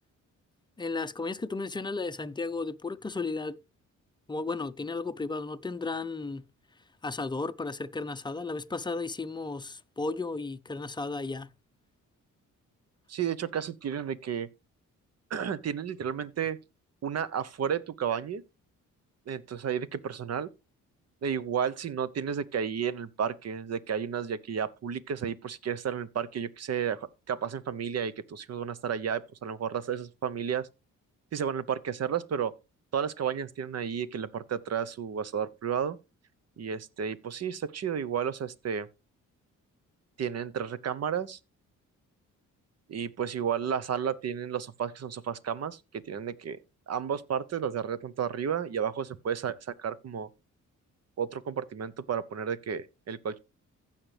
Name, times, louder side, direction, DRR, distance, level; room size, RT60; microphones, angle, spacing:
voice 1, 0.8-3.6 4.3-6.4 7.0-11.5, left 3 dB, 15° left, 0.6 m, -34 dB
voice 2, 13.1-14.5 15.3-16.6 17.0-18.4 19.3-20.5 21.2-30.7 31.3-32.5 32.9-36.0 36.6-38.9 40.2-41.4 42.9-46.6 46.9-50.3 51.2-53.4, right 8 dB, 50° right, 0.9 m, -32 dB
15.5 x 5.8 x 3.3 m
cardioid pair, 90°, 32 cm